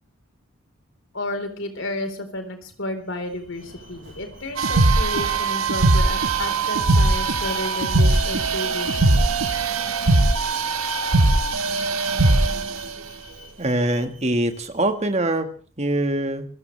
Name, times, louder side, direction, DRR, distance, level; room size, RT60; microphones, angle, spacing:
voice 1, 1.1-9.4, left 1 dB, 60° left, 6 dB, 4.2 m, -32 dB
Alarm, 3.1-15.1, left 2 dB, 60° right, 5.1 m, -42 dB
sound 1, 4.6-12.8, right 2 dB, 85° right, 1.4 m, -20 dB
voice 2, 13.6-15.5 15.8-16.5, right 1 dB, 30° right, 7 dB, 1.7 m, -23 dB
26.5 x 16.0 x 3.4 m, 0.40 s
head